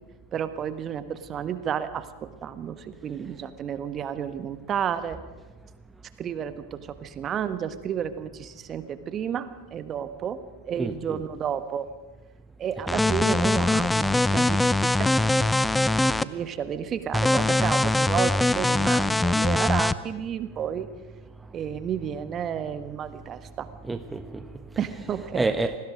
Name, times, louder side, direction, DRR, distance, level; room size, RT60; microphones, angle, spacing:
voice 1, 0.3-5.2 6.2-10.4 10.6-11.9 12.6-15.1 16.2-20.9 21.5-23.7 24.8-25.4, right 8 dB, 35° right, 11 dB, 1.5 m, -31 dB
voice 2, 10.8-11.2 23.8-25.8, right 3 dB, 10° right, 9 dB, 1.1 m, -30 dB
sound 1, 12.9-16.2 17.1-19.9, left 2 dB, 5° left, 0.7 m, -22 dB
27.5 x 19.5 x 5.3 m, 1.2 s
hypercardioid pair, 95°, 0 cm